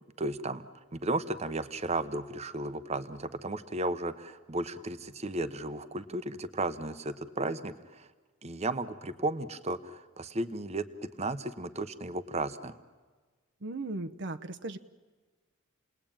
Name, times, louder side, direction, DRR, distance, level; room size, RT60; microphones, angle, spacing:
voice 1, 0.2-0.6 0.9-8.1 8.4-10.9 11.2-12.7, right 2 dB, 30° right, 11 dB, 1.0 m, -34 dB
voice 2, 13.6-14.8, right 2 dB, 60° right, 7 dB, 0.9 m, -37 dB
29.0 x 20.5 x 8.9 m, 1.4 s
head